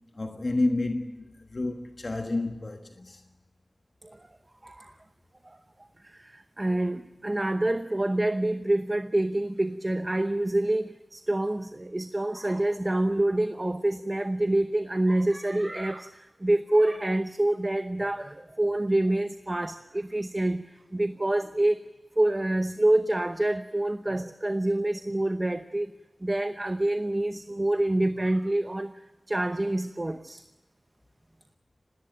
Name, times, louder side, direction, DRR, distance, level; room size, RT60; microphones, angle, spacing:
voice 1, 0.1-3.2, left 2 dB, 55° left, 1.4 m, -30 dB
voice 2, 4.6-4.9 5.4-5.6 6.0-21.8 22.2-25.9 26.2-28.9 29.3-30.4, right 1 dB, 30° right, 0.9 m, -27 dB
20.0 x 18.0 x 9.0 m
wide cardioid pair, 55°, 0 cm